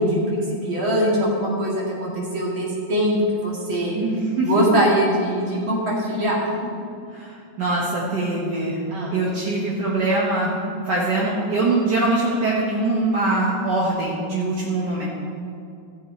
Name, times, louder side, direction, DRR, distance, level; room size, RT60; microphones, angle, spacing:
voice 1, 0.0-4.0 4.4-6.5 8.9-9.1, equal, 85° right, -5 dB, 3.1 m, -22 dB
voice 2, 4.0-4.5 7.1-8.8 9.1-10.6 10.9-15.1, right 2 dB, 60° right, -5 dB, 1.9 m, -23 dB
14.5 x 7.2 x 4.4 m, 2.5 s
omnidirectional pair, 2.1 m